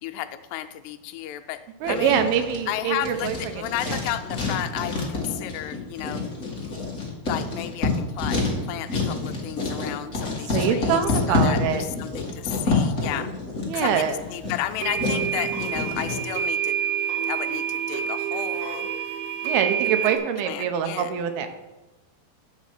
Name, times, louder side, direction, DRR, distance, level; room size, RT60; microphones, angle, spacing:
voice 1, 0.0-1.6 1.9-2.2 2.7-6.2 6.6-6.7 7.3-8.4 8.7-11.0 11.3-13.3 13.8-16.8 17.2-18.9 20.5-21.3, left 13 dB, 85° left, 8 dB, 2.7 m, -33 dB
Writing, 1.8-16.2, left 3 dB, 65° left, 0.7 m, -28 dB
voice 2, 1.8-3.4 3.9-4.0 10.5-11.8 13.7-14.2 19.4-21.5, right 8 dB, 75° right, 7 dB, 2.6 m, -24 dB
sound 1, 13.7-13.8 14.8-20.2, right 9 dB, 60° right, 1.8 m, -27 dB
9.7 x 5.2 x 6.5 m, 1.1 s
omnidirectional pair, 4.8 m